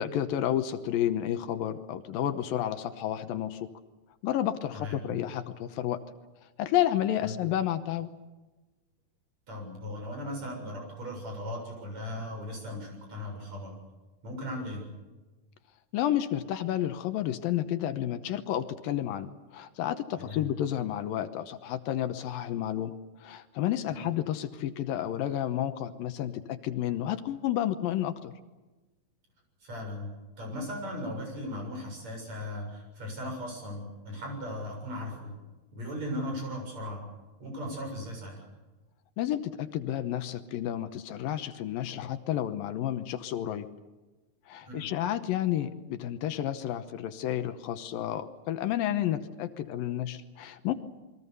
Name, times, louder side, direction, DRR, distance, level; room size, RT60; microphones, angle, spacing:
voice 1, 0.0-3.7 4.2-6.0 6.6-8.1 15.9-22.9 23.2-28.3 39.2-43.7 44.5-50.7, left 11 dB, 75° left, 9 dB, 2.7 m, -31 dB
voice 2, 9.5-13.7 14.2-14.8 20.2-20.5 23.9-24.0 29.6-30.1 30.4-35.3 35.7-37.0 37.4-38.4 44.6-44.9, left 1 dB, 45° right, 2 dB, 8.3 m, -37 dB
28.5 x 22.5 x 6.9 m, 1.2 s
omnidirectional pair, 4.2 m